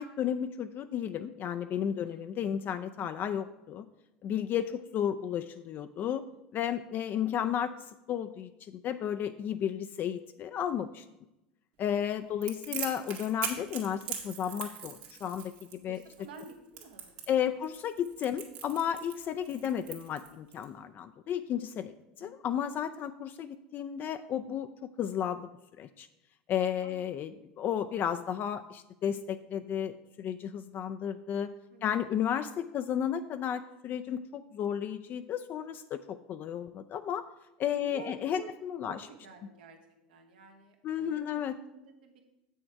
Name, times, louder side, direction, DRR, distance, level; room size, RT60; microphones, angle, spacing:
voice 1, 0.0-3.9 4.2-6.2 6.5-7.7 8.1-11.0 11.8-16.0 17.3-24.7 25.0-25.5 25.8-26.1 26.5-31.5 31.8-37.2 37.6-39.1 40.8-41.5, left 9 dB, 45° left, 10 dB, 0.4 m, -33 dB
voice 2, 1.9-2.3 4.5-4.6 12.2-12.4 15.9-17.6 22.2-22.4 26.8-27.0 31.7-31.8 37.7-38.5 38.8-39.8 40.1-41.4 41.7-42.2, right 5 dB, 85° right, 4 dB, 1.3 m, -51 dB
Crackle, 12.4-20.6, right 8 dB, 65° right, 1.6 m, -41 dB
7.6 x 6.3 x 4.6 m, 0.95 s
hypercardioid pair, 95°, 5 cm